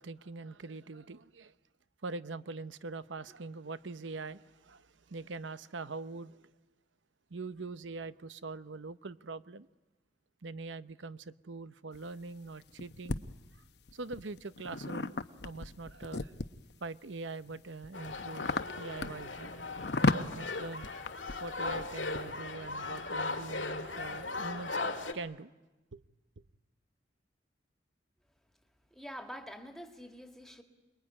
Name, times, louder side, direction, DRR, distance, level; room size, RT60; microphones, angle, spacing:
voice 1, 0.0-1.5 2.0-6.5 7.3-9.7 10.4-13.2 13.9-16.3 16.8-19.5 20.0-20.9 21.4-24.8 25.1-25.5 25.9-26.0, right 3 dB, 85° right, 0.8 m, -43 dB
sound 1, 11.9-13.2 13.9-16.7 17.3-22.3, left 3 dB, 65° left, 0.9 m, -35 dB
sound 2, 17.9-25.1, left 3 dB, 90° left, 2.2 m, -38 dB
voice 2, 28.9-30.6, equal, ahead, 2.0 m, -46 dB
28.0 x 22.0 x 9.7 m
head